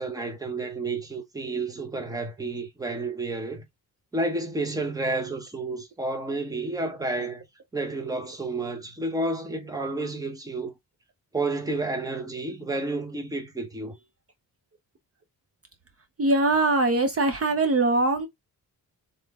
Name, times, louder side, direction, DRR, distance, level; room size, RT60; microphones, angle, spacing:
voice 1, 0.0-3.6 4.1-7.4 7.7-10.7 11.3-13.9, right 2 dB, 10° right, 0.8 m, -30 dB
voice 2, 16.2-18.3, right 2 dB, 40° right, 0.7 m, -22 dB
3.9 x 3.9 x 3.5 m
wide cardioid pair, 175°, 38 cm